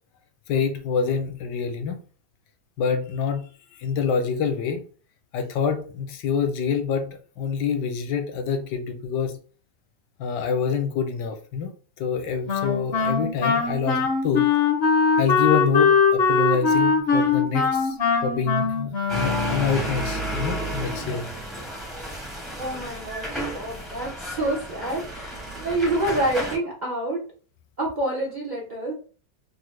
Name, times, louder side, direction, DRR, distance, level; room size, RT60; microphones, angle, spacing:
voice 1, 0.5-2.0 2.8-4.8 5.3-9.4 10.2-11.7 12.0-14.5 15.2-21.3, left 6 dB, 80° left, 5 dB, 1.2 m, -26 dB
Wind instrument woodwind instrument, 12.5-19.9, left 5 dB, 60° left, 0.6 m, -21 dB
sound 1, 19.1-26.6, right 1 dB, ahead, 0.4 m, -32 dB
voice 2, 22.6-27.2 27.8-28.9, right 1 dB, 80° right, -3 dB, 0.4 m, -27 dB
3.5 x 2.0 x 3.1 m, 0.39 s
omnidirectional pair, 1.9 m